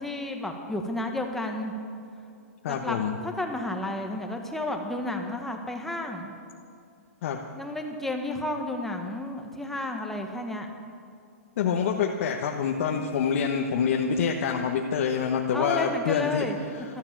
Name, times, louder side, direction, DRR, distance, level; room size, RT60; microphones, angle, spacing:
voice 1, 0.0-1.7 2.7-6.3 7.5-10.7 15.5-16.6, left 1 dB, 5° left, 3 dB, 1.4 m, -32 dB
voice 2, 2.6-3.2 7.2-7.4 11.6-16.4 16.7-16.8, left 6 dB, 55° left, 1 dB, 1.2 m, -26 dB
14.0 x 13.0 x 7.5 m, 2.4 s
hypercardioid pair, 150°, 8 cm